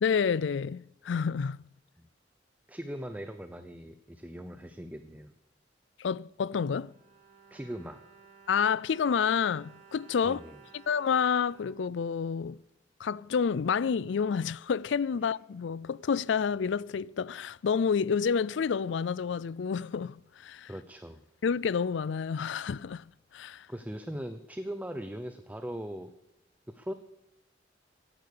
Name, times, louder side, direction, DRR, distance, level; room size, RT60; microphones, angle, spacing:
voice 1, 0.0-1.6 6.0-6.9 8.5-10.4 10.7-12.6 13.0-20.7 21.4-23.1 23.3-23.7, left 6 dB, 75° left, 0.4 m, -29 dB
voice 2, 2.7-5.3 7.5-8.0 10.2-10.6 20.7-21.2 23.7-26.1 26.7-26.9, equal, 10° right, 0.7 m, -40 dB
Bowed string instrument, 6.7-12.7 13.4-13.5 13.8-13.9, right 6 dB, 35° right, 4.5 m, -57 dB
15.5 x 10.5 x 6.7 m
head